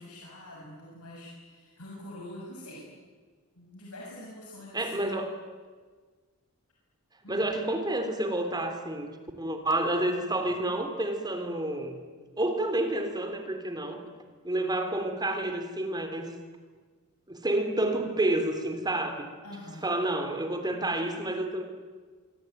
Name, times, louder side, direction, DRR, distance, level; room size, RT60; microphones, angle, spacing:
voice 1, 0.0-2.9 3.5-5.2 7.2-7.4 19.4-19.9, left 1 dB, 80° left, -3 dB, 6.8 m, -45 dB
voice 2, 4.7-5.3 7.3-9.1 9.4-12.0 12.4-14.0 14.4-16.3 17.3-19.3 19.8-21.6, right 1 dB, 20° right, 6 dB, 3.4 m, -29 dB
25.5 x 24.5 x 9.2 m, 1.5 s
head